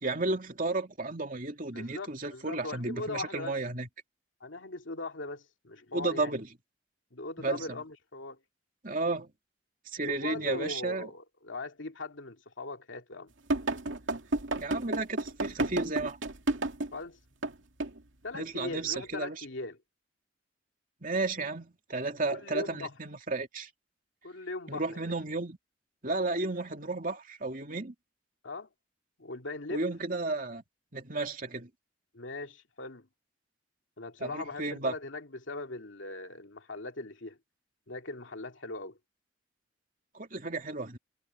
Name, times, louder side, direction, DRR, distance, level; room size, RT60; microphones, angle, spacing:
voice 1, 0.0-3.9 5.9-6.5 7.4-7.8 8.8-9.3 9.9-11.1 14.6-16.2 18.3-19.4 21.0-23.7 24.7-25.6 26.0-27.9 29.7-30.6 30.9-31.7 34.2-34.9 40.1-41.0, right 3 dB, 45° right, 2.7 m, -33 dB
voice 2, 1.7-3.6 4.4-6.3 7.1-8.4 10.1-13.3 16.9-17.2 18.2-19.8 22.3-22.9 24.2-25.0 28.4-28.7 29.2-29.8 32.1-33.1 34.0-37.4 37.9-39.0, left 2 dB, 90° left, 2.4 m, -40 dB
sound 1, 13.5-17.0 17.4-17.5 17.8-18.0, right 2 dB, 85° right, 2.4 m, -31 dB
head